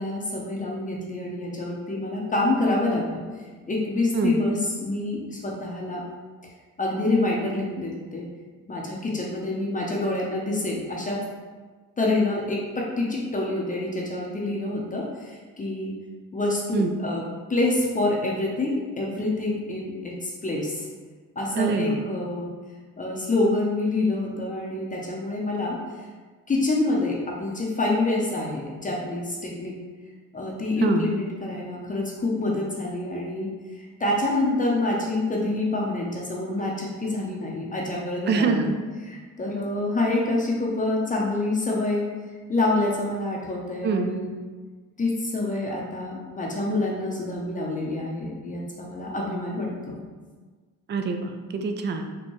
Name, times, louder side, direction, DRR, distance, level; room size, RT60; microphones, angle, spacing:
voice 1, 0.0-3.2 3.7-6.0 6.8-8.3 8.7-11.2 12.0-15.9 16.3-17.2 17.5-20.9 21.4-22.5 23.0-25.8 26.5-29.7 30.3-33.5 33.8-38.7 39.0-42.0 42.5-44.3 45.0-50.0, left 2 dB, 25° left, -3 dB, 0.6 m, -27 dB
voice 2, 21.6-22.0 30.8-31.1 38.3-38.7 43.8-44.1 50.9-52.1, right 4 dB, 35° right, 5 dB, 0.4 m, -25 dB
4.4 x 2.2 x 3.0 m, 1.4 s
cardioid pair, 90°, 30 cm